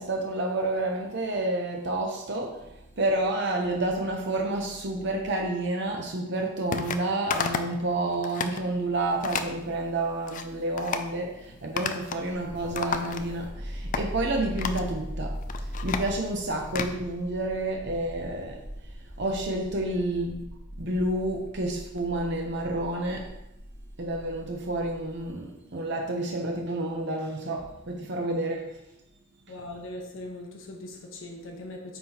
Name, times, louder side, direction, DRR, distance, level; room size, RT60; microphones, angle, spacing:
voice 1, 0.0-20.4 20.8-23.3 24.0-28.8, right 2 dB, 60° right, 1 dB, 0.8 m, -30 dB
sound 1, 6.7-7.0 7.3-7.8 8.1-8.6 9.2-9.5 10.0-10.4 10.8-11.1 11.8-12.3 12.5-13.5 13.9-14.1 14.6-14.9 15.3-16.9, left 6 dB, 40° left, 0.4 m, -31 dB
sound 2, 12.3-25.3, equal, 35° right, 2.0 m, -45 dB
sound 3, 13.5-16.2, equal, ahead, 0.9 m, -34 dB
voice 2, 29.5-32.0, left 1 dB, 70° left, 1 dB, 1.0 m, -40 dB
9.4 x 3.9 x 2.9 m, 0.87 s
head